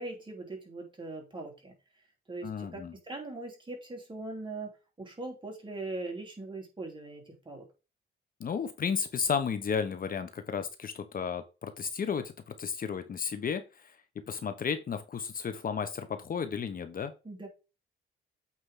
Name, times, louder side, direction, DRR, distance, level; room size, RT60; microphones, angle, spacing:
voice 1, 0.0-1.7 2.3-7.7 17.2-17.5, right 2 dB, 25° right, 1 dB, 3.4 m, -41 dB
voice 2, 2.4-2.9 8.4-12.3 12.6-14.0 14.3-17.1, left 6 dB, 45° left, 10 dB, 1.0 m, -33 dB
8.4 x 4.7 x 3.8 m, 0.29 s
cardioid pair, 90°, 20 cm